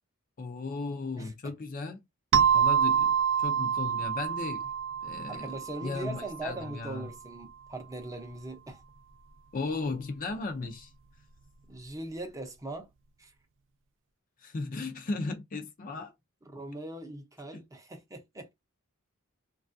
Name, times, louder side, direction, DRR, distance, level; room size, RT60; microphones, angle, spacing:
voice 1, 0.4-2.0 2.5-4.7 5.0-5.6 5.8-7.1 9.5-10.9 14.4-16.1 17.5-17.6, left 3 dB, 40° left, 0.5 m, -36 dB
sound 1, 2.3-6.7, right 8 dB, 60° right, 0.4 m, -27 dB
voice 2, 5.3-8.8 11.7-12.9 13.2-13.3 16.4-18.5, right 2 dB, 15° right, 0.6 m, -40 dB
3.2 x 2.3 x 2.5 m
head